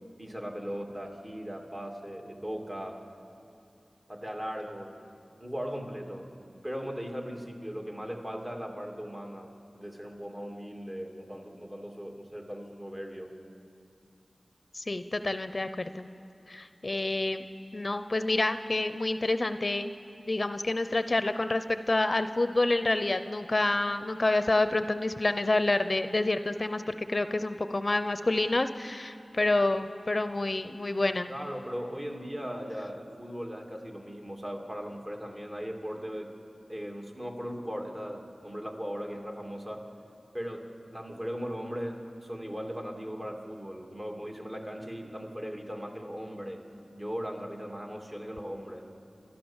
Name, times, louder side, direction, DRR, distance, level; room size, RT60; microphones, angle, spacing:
voice 1, 0.2-3.0 4.1-5.0 5.4-6.3 6.6-13.4 31.3-36.3 36.7-39.9 40.3-46.6 46.9-48.9, equal, 30° right, 2 dB, 2.5 m, -38 dB
voice 2, 14.7-16.1 16.5-17.5 17.7-19.9 20.3-31.3, left 2 dB, 45° left, 10 dB, 0.7 m, -28 dB
28.5 x 13.0 x 7.2 m, 2.6 s
wide cardioid pair, 50°, 0 cm